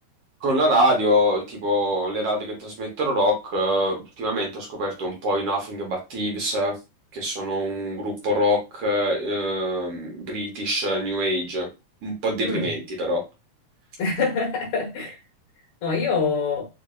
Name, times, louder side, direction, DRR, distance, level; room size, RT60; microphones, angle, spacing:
voice 1, 0.4-6.7 7.1-11.7 12.0-13.2, equal, 65° right, 1.6 m, -24 dB
voice 2, 14.0-15.2 15.8-16.7, left 4 dB, 60° left, 1.5 m, -25 dB
5.0 x 2.6 x 2.3 m
omnidirectional pair, 3.5 m